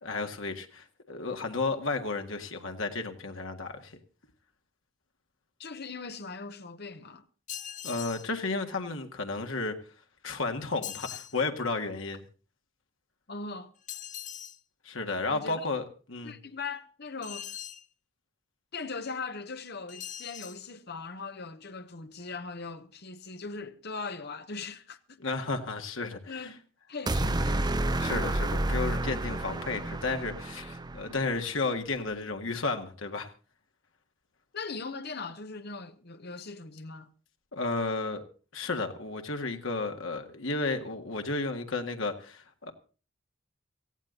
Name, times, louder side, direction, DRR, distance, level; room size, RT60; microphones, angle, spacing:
voice 1, 0.0-4.0 7.8-9.8 10.2-12.2 14.9-16.4 25.2-26.5 28.0-33.3 37.5-38.2 38.5-42.7, left 3 dB, 75° left, 1.9 m, -33 dB
voice 2, 5.6-7.2 13.3-13.7 15.3-15.7 16.2-17.6 18.7-25.0 26.3-26.6 26.9-28.0 34.5-37.1, left 4 dB, 55° left, 1.2 m, -40 dB
sound 1, 7.5-8.3 10.8-11.4 13.9-14.6 17.2-17.9 19.9-20.6, left 10 dB, 40° left, 0.7 m, -41 dB
sound 2, 27.1-31.3, right 2 dB, 20° right, 0.6 m, -30 dB
18.0 x 15.0 x 3.9 m
head